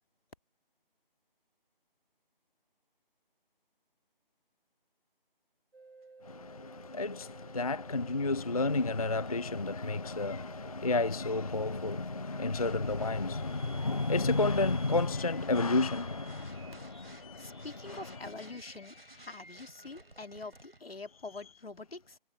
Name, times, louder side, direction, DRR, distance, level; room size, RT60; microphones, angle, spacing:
sound 1, 5.7-20.8, right 3 dB, 80° right, 4.1 m, -53 dB
voice 1, 6.9-7.3 7.5-16.6 17.9-18.0, left 3 dB, 40° left, 0.4 m, -30 dB
voice 2, 17.4-22.2, left 3 dB, 85° left, 1.8 m, -45 dB
figure-of-eight pair, 160°, 29 cm